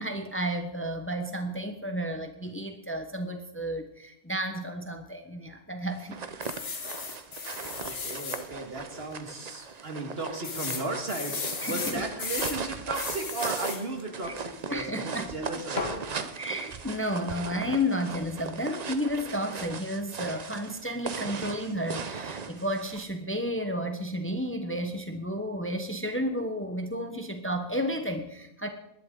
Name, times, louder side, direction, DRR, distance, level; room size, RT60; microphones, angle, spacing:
voice 1, 0.0-6.3 11.6-12.0 14.7-15.3 16.4-28.7, equal, 10° left, 6 dB, 1.0 m, -32 dB
sound 1, 6.0-23.0, right 5 dB, 40° right, 0.8 m, -38 dB
sound 2, 6.4-8.4 9.0-9.1 9.3-9.4 10.4-12.6 12.9-13.8 15.8-16.0, left 4 dB, 65° left, 1.6 m, -35 dB
voice 2, 7.7-16.3, right 2 dB, 60° right, 4 dB, 2.2 m, -36 dB
19.0 x 11.5 x 3.8 m, 0.78 s
omnidirectional pair, 1.1 m